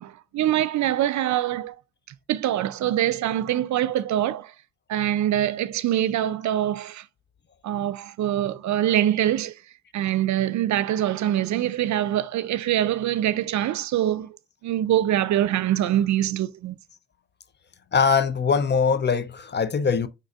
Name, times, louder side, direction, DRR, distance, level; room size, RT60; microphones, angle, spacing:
voice 1, 0.0-1.8 2.3-4.5 4.9-7.0 7.6-9.5 9.9-14.3 14.6-16.8, right 12 dB, 65° right, 0.4 m, -24 dB
voice 2, 17.9-20.1, left 6 dB, 35° left, 0.5 m, -22 dB
5.1 x 3.9 x 2.4 m
cardioid pair, 65°, 32 cm